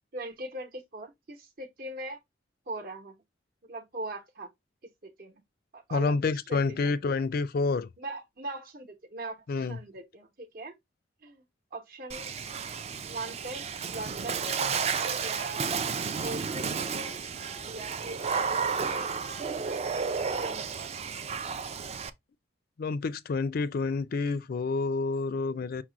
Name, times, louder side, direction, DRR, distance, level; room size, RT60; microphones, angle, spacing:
voice 1, 0.1-2.2 2.7-3.2 3.6-4.5 5.0-5.4 5.7-6.9 8.0-10.7 11.2-11.4 11.7-12.3 13.0-15.7 16.1-20.9, right 2 dB, 50° right, 0.9 m, -41 dB
voice 2, 5.9-7.9 9.5-9.8 22.8-25.8, left 4 dB, 55° left, 0.4 m, -28 dB
Water / Splash splatter, 12.1-22.1, right 5 dB, 35° right, 0.4 m, -32 dB
6.0 x 2.1 x 3.8 m
head